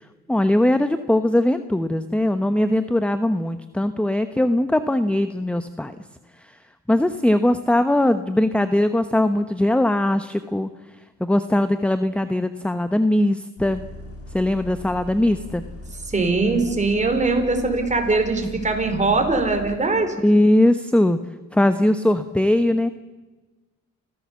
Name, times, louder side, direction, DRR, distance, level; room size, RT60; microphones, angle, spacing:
voice 1, 0.3-5.9 6.9-10.7 11.2-13.8 14.3-15.6 18.6-18.7 20.2-21.2 21.5-22.9, left 1 dB, 5° left, 10 dB, 0.9 m, -20 dB
Bus, 13.6-19.8, left 1 dB, 50° left, 3.1 m, -39 dB
voice 2, 16.1-20.1, right 3 dB, 25° right, 5 dB, 4.6 m, -21 dB
29.0 x 16.0 x 7.3 m, 1.2 s
cardioid pair, 90°, 30 cm